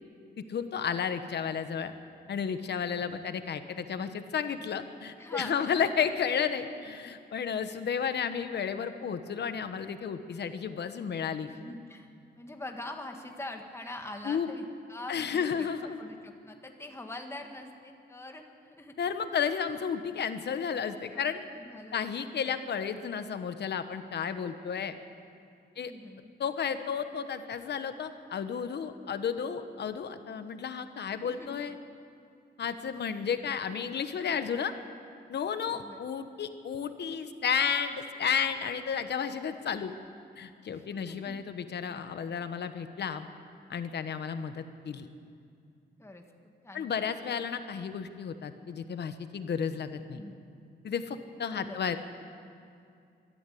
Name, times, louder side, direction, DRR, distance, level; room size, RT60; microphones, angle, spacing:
voice 1, 0.5-1.9 2.3-11.5 14.2-14.5 15.1-16.0 19.0-21.4 21.9-24.9 25.8-25.9 26.4-31.8 32.6-34.7 35.3-39.9 40.4-43.3 43.7-45.1 46.7-50.2 50.8-52.0, left 7 dB, 70° left, 9 dB, 1.2 m, -32 dB
voice 2, 5.2-5.8 11.5-12.1 12.3-18.4 18.8-18.9 21.1-22.0 25.7-26.3 31.1-31.6 35.7-36.0 40.6-41.4 46.0-46.2 46.6-46.9 50.0-50.4 51.5-51.9, left 1 dB, 15° left, 3 dB, 1.8 m, -44 dB
23.0 x 13.5 x 8.5 m, 2.4 s
wide cardioid pair, 145°, 18 cm